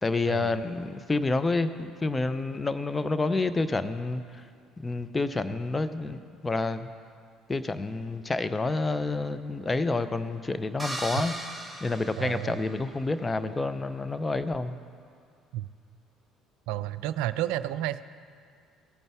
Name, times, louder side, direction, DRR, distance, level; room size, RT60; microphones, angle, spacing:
voice 1, 0.0-4.2 4.8-6.9 7.5-11.3 11.8-14.8, left 3 dB, 20° left, 11 dB, 0.6 m, -29 dB
sound 1, 10.8-13.0, right 1 dB, 10° right, 1.2 m, -38 dB
voice 2, 12.2-12.6 15.5-15.7 16.7-18.0, right 13 dB, 65° right, 14 dB, 0.3 m, -31 dB
17.0 x 9.3 x 3.5 m, 2.2 s
figure-of-eight pair, 55°, 0 cm